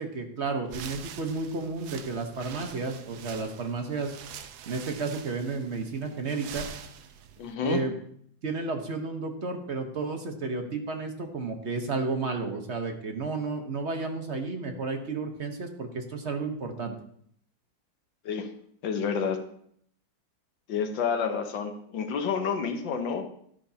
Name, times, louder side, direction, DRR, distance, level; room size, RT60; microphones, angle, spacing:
voice 1, 0.0-4.1 4.7-6.7 7.6-7.9 8.4-16.9, right 3 dB, 45° right, 5 dB, 1.1 m, -32 dB
sound 1, 0.7-7.5, right 8 dB, 65° right, 1.1 m, -45 dB
voice 2, 7.4-7.8 18.3-18.5 18.8-19.4 20.7-23.2, left 6 dB, 75° left, 7 dB, 1.7 m, -29 dB
12.0 x 11.0 x 2.8 m, 0.66 s
omnidirectional pair, 2.1 m